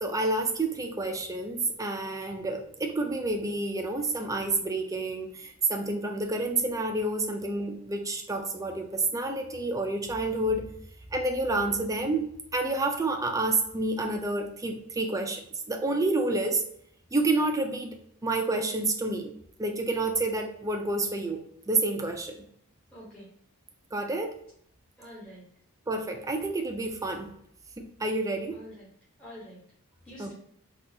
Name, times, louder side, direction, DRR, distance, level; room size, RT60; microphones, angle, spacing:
voice 1, 0.0-10.7 11.1-15.4 15.7-16.6 17.1-19.3 19.6-22.4 23.9-24.4 25.9-27.3 27.8-28.6 30.2-30.3, right 2 dB, 15° right, 4 dB, 0.4 m, -29 dB
voice 2, 22.9-23.3 25.0-25.4 28.5-28.9 29.2-29.6 30.0-30.3, equal, 5° left, -9 dB, 0.9 m, -46 dB
3.6 x 2.4 x 2.7 m, 0.67 s
head